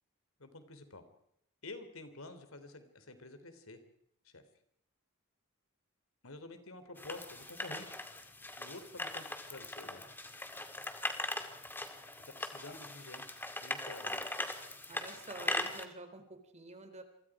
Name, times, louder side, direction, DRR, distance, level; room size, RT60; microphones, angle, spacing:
voice 1, 0.4-1.0 1.6-3.8 4.2-4.4 6.2-8.1 8.6-10.0 12.4-14.2, left 2 dB, 80° left, 9 dB, 3.4 m, -50 dB
sound 1, 7.0-15.8, left 1 dB, 10° left, 2.2 m, -40 dB
voice 2, 14.9-17.0, right 2 dB, 35° right, 8 dB, 3.7 m, -48 dB
27.5 x 25.0 x 4.9 m, 0.74 s
head